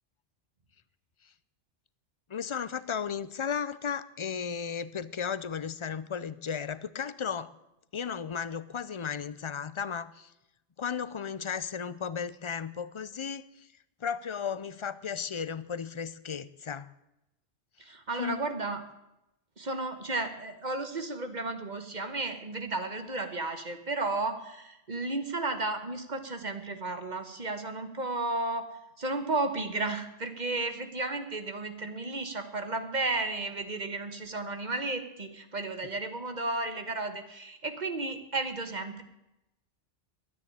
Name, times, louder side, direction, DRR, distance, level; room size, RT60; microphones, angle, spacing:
voice 1, 2.3-7.5 7.9-10.3 10.8-13.7 14.0-16.9 18.2-18.4, left 7 dB, 45° left, 15 dB, 0.4 m, -35 dB
voice 2, 17.8-18.8 19.6-28.6 29.0-39.0, right 2 dB, 40° right, 8 dB, 1.4 m, -33 dB
10.5 x 9.8 x 9.8 m, 0.90 s
omnidirectional pair, 1.2 m